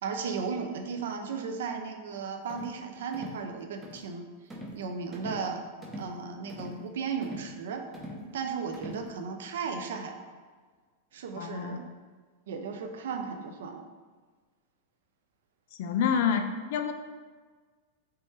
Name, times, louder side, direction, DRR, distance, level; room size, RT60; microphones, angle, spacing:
voice 1, 0.0-4.3 4.7-5.6 6.0-7.8 8.3-10.2 11.1-11.9 12.5-13.8, right 5 dB, 60° right, 5 dB, 0.4 m, -35 dB
sound 1, 2.5-2.8 3.1-3.4 3.8-4.1 4.5-4.8 5.1-5.5 5.8-6.1 6.5-6.8 7.2-7.5 7.9-8.3 8.7-9.1, right 1 dB, 15° right, 0.7 m, -41 dB
voice 2, 11.4-11.8 15.8-16.9, left 7 dB, 50° left, 7 dB, 0.3 m, -28 dB
3.3 x 3.1 x 3.0 m, 1.5 s
figure-of-eight pair, 90°, 0 cm